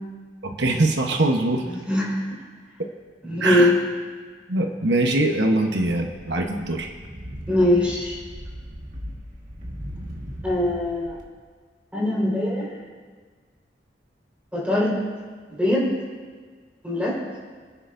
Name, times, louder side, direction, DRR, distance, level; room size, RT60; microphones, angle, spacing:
voice 1, 0.4-1.6 3.4-3.7 4.5-6.9, right 2 dB, 80° right, 3 dB, 1.0 m, -22 dB
voice 2, 1.6-2.2 3.2-3.7 7.5-8.2 10.4-11.2 11.9-12.7 14.5-15.0 15.6-15.9 16.8-17.2, left 1 dB, 5° right, -6 dB, 4.5 m, -22 dB
sound 1, 6.1-11.2, equal, 45° right, 1.7 m, -38 dB
25.5 x 10.0 x 2.6 m, 1.6 s
head